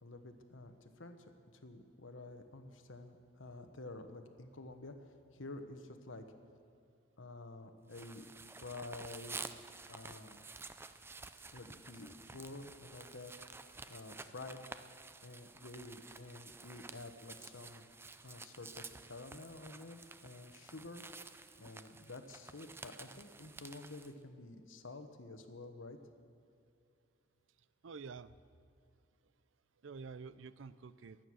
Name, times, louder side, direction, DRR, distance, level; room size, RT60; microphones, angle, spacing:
voice 1, 0.0-6.2 7.2-9.4 9.9-10.4 11.5-13.3 13.6-14.6 15.2-17.9 18.2-21.0 21.6-26.0, left 2 dB, 85° left, 7 dB, 1.2 m, -50 dB
sound 1, 7.9-24.1, right 3 dB, 10° right, 0.4 m, -51 dB
voice 2, 27.8-28.3 29.8-31.3, right 5 dB, 75° right, 16 dB, 0.5 m, -48 dB
23.0 x 9.1 x 6.3 m, 2.5 s
head